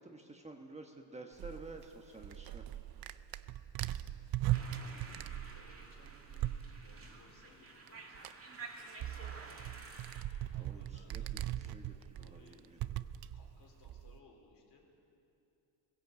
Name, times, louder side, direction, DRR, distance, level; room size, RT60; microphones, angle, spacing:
voice 1, 0.0-2.6 10.6-12.8, right 2 dB, 15° right, 3 dB, 1.2 m, -51 dB
sound 1, 1.4-7.0 7.9-8.0 8.1-14.2, right 13 dB, 55° right, 0.6 m, -40 dB
voice 2, 3.9-4.2 5.5-8.3 10.5-11.3 12.2-12.7 13.3-14.9, left 3 dB, 60° left, 1 dB, 4.3 m, -63 dB
sound 2, 4.5-10.2, right 4 dB, 30° right, 2.2 m, -51 dB
19.0 x 16.0 x 8.3 m, 2.8 s
cardioid pair, 135°, 44 cm